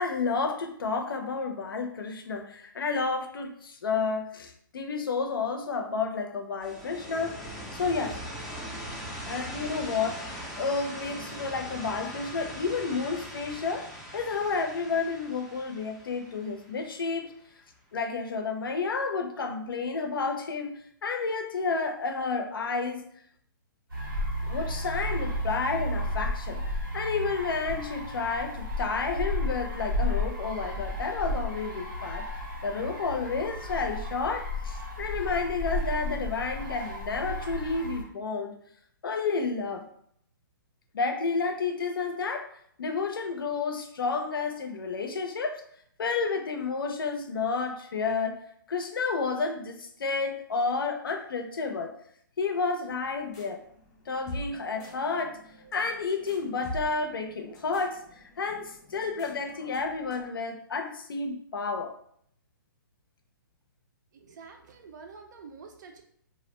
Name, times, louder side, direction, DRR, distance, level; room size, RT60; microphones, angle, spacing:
voice 1, 0.0-7.4 7.7-8.2 9.3-13.9 14.1-17.3 17.9-20.7 21.0-23.0 24.5-26.6 26.9-32.3 32.6-38.5 39.0-39.8 40.9-42.5 42.8-45.6 46.0-48.4 48.7-51.9 52.4-53.6 54.1-55.4 55.7-58.0 58.4-61.9, left 4 dB, 90° left, 5 dB, 0.5 m, -31 dB
sound 1, 6.6-17.3, equal, ahead, 0.4 m, -41 dB
sound 2, 23.9-38.0, left 1 dB, 90° right, 1.1 m, -33 dB
sound 3, 52.9-60.3, left 1 dB, 25° left, 0.8 m, -45 dB
voice 2, 64.1-66.0, right 5 dB, 60° right, 4 dB, 0.5 m, -47 dB
2.4 x 2.0 x 3.0 m, 0.66 s
hypercardioid pair, 155°, 11 cm